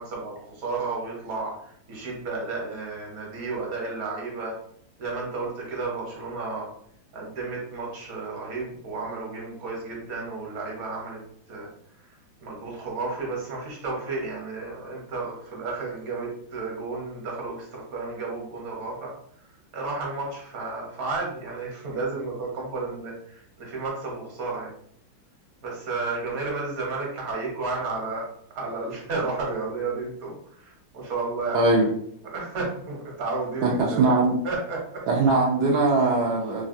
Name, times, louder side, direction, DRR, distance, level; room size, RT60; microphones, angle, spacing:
voice 1, 0.0-4.5 5.0-6.7 7.1-11.2 11.5-11.7 12.4-19.1 19.7-24.7 25.6-28.3 28.5-31.8 32.3-34.1 34.4-35.0, right 3 dB, 55° right, -2 dB, 1.2 m, -32 dB
voice 2, 31.5-31.9 33.6-34.4 35.1-36.6, right 3 dB, 75° right, -2 dB, 0.9 m, -21 dB
3.4 x 2.2 x 2.5 m, 0.66 s
omnidirectional pair, 2.2 m